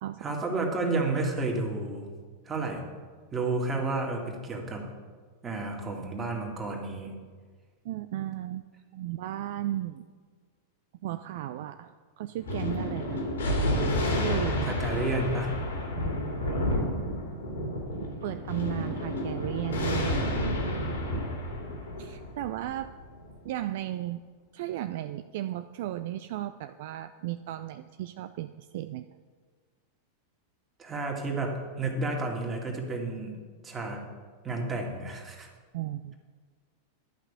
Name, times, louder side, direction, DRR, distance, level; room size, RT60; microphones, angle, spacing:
voice 1, 0.2-2.1 2.5-2.8 3.3-4.9 5.4-7.1 14.6-15.5 30.8-33.4 33.6-34.1 34.4-35.5, right 2 dB, 20° right, 1 dB, 2.1 m, -31 dB
voice 2, 7.8-8.6 8.9-10.0 11.0-13.2 14.2-14.8 16.0-17.0 18.2-20.3 22.0-23.0 23.4-24.2 24.5-29.1 35.7-36.1, right 14 dB, 50° right, 11 dB, 0.3 m, -35 dB
Thunder, 12.4-23.3, left 1 dB, 70° left, 2.7 m, -30 dB
11.5 x 5.9 x 8.6 m, 1.5 s
figure-of-eight pair, 90°, 0 cm